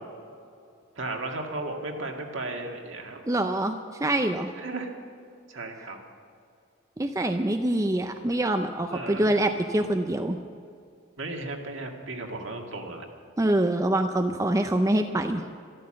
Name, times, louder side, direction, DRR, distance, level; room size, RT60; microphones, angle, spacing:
voice 1, 1.0-3.2 4.6-4.9 5.5-6.0 8.9-9.3 11.2-13.1, right 2 dB, 65° right, 2 dB, 2.0 m, -35 dB
voice 2, 3.3-4.5 7.0-10.4 13.4-15.4, right 1 dB, 15° right, 6 dB, 0.5 m, -25 dB
13.5 x 13.0 x 7.6 m, 2.5 s
head